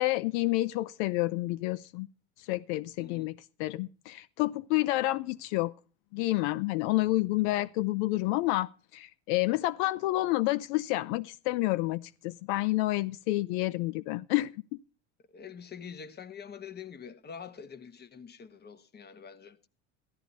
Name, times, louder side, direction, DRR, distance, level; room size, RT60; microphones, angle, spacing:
voice 1, 0.0-2.1 2.4-3.3 3.6-5.7 6.1-14.8, left 18 dB, 80° left, 0.6 m, -29 dB
voice 2, 3.0-3.3 15.3-19.6, left 7 dB, 30° left, 1.3 m, -45 dB
14.5 x 12.0 x 4.1 m
supercardioid pair, 110°, 33 cm